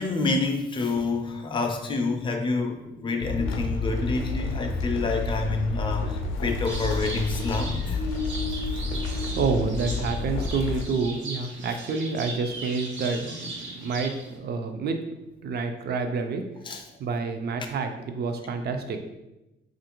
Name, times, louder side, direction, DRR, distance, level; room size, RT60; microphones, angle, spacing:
voice 1, 0.0-8.0 16.7-16.8, left 3 dB, 25° left, 3 dB, 0.4 m, -28 dB
sound 1, 2.6-6.2 6.4-10.6, left 3 dB, 90° right, 1.3 m, -38 dB
sound 2, 3.2-10.8, left 3 dB, 80° left, 0.5 m, -30 dB
sound 3, 6.6-14.4, right 2 dB, 70° right, 0.8 m, -39 dB
voice 2, 9.3-15.0 15.4-16.4 17.0-19.0, right 4 dB, 55° right, 6 dB, 0.4 m, -28 dB
3.1 x 2.5 x 2.9 m, 0.96 s
cardioid pair, 110°, 20 cm